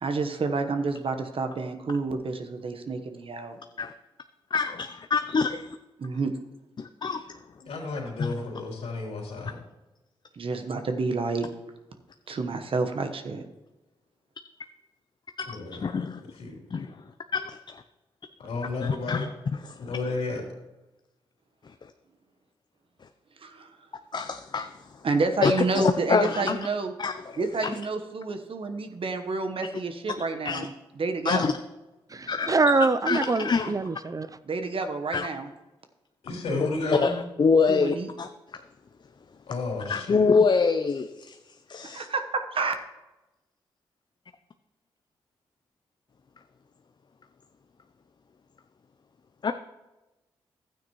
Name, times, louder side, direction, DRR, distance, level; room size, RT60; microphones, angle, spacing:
voice 1, 0.0-3.6 6.0-6.3 10.3-11.5 12.3-13.4 23.4-23.7 25.0-26.9 27.4-31.5 34.4-35.5 37.7-38.1 41.9-42.7, right 3 dB, 60° right, 7 dB, 1.1 m, -29 dB
voice 2, 4.5-5.8 6.8-7.3 8.2-8.3 15.4-16.2 16.7-16.9 17.3-17.8 18.8-19.3 19.5-19.9 24.1-24.8 25.4-26.6 27.0-27.4 30.4-30.7 31.2-31.5 32.3-32.6 33.1-33.7 35.1-35.3 37.0-38.3 39.9-41.4 41.7-42.1 49.4-49.5, left 5 dB, 45° left, 8 dB, 0.5 m, -25 dB
voice 3, 7.6-9.6 15.5-16.0 16.3-16.5 18.4-19.3 19.9-20.4 36.2-37.2 39.5-40.2, left 3 dB, 75° left, -2 dB, 3.2 m, -32 dB
voice 4, 32.1-34.3, right 3 dB, 35° right, 13 dB, 0.5 m, -24 dB
12.5 x 9.1 x 3.1 m, 1.1 s
supercardioid pair, 45°, 10 cm